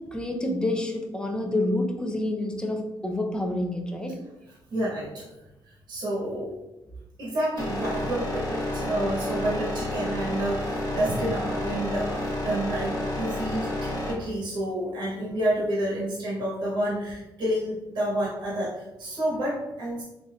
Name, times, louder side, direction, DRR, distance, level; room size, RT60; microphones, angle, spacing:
voice 1, 0.1-4.2, left 1 dB, 10° left, 2 dB, 0.4 m, -28 dB
voice 2, 4.7-5.3 5.6-6.5 7.2-20.0, right 1 dB, 65° right, -7 dB, 0.9 m, -29 dB
sound 1, 7.6-14.1, left 1 dB, 45° left, 0.9 m, -30 dB
3.4 x 2.5 x 2.2 m, 0.98 s
cardioid pair, 105°, 8 cm